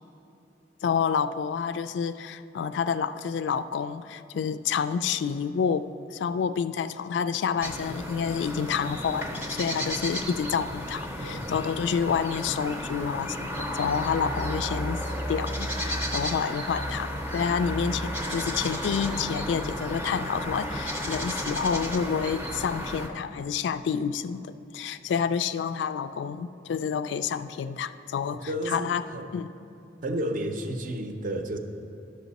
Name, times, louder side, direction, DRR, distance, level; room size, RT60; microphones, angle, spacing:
voice 1, 0.8-5.8 6.1-29.1 29.3-29.5, left 6 dB, 75° left, 13 dB, 0.3 m, -29 dB
sound 1, 7.6-23.1, equal, 10° right, 0.6 m, -33 dB
voice 2, 11.2-11.5 28.5-29.3 30.0-31.6, right 1 dB, 50° right, 6 dB, 0.6 m, -31 dB
11.0 x 6.4 x 4.1 m, 2.7 s
head